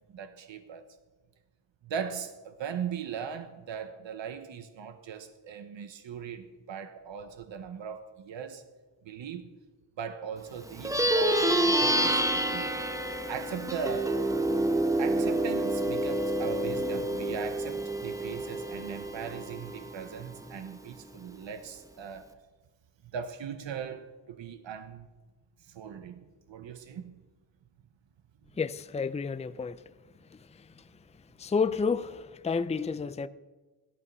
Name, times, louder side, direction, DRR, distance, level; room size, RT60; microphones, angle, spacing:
voice 1, 0.1-0.9 1.8-8.6 9.0-9.5 10.0-12.7 13.3-14.2 15.0-22.3 23.1-25.1 25.6-27.2, right 7 dB, 85° right, 1.1 m, -39 dB
Plucked string instrument, 10.7-20.4, right 1 dB, 5° right, 1.1 m, -28 dB
voice 2, 28.6-29.8 30.3-30.9 31.4-33.3, left 5 dB, 15° left, 0.5 m, -31 dB
16.5 x 12.5 x 6.1 m
wide cardioid pair, 100°, 44 cm